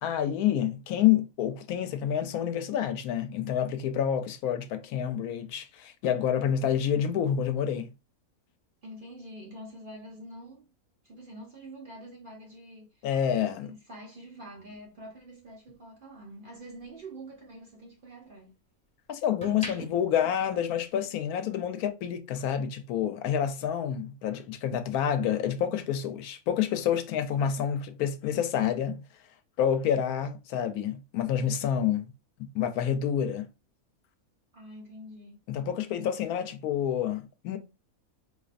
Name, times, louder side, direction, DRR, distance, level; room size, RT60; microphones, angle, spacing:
voice 1, 0.0-7.9 13.0-13.7 19.1-29.0 29.6-32.1 32.4-33.5 35.5-37.6, left 9 dB, 85° left, 1.1 m, -28 dB
voice 2, 8.8-10.7 11.0-13.1 13.4-18.5 34.5-35.4, right 1 dB, 55° right, 0.6 m, -46 dB
sound 1, 14.6-16.9 17.3-18.7 19.2-21.3 21.6-21.9, right 1 dB, 5° left, 0.8 m, -45 dB
4.1 x 2.6 x 2.4 m
omnidirectional pair, 1.5 m